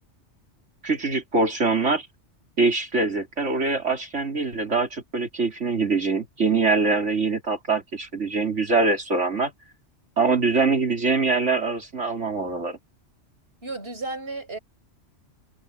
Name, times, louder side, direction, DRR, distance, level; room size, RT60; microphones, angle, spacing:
voice 1, 0.8-2.1 2.6-9.5 10.2-12.8, right 3 dB, 80° right, 3.8 m, -23 dB
voice 2, 13.6-14.6, right 3 dB, 55° right, 6.4 m, -33 dB
omnidirectional pair, 1.2 m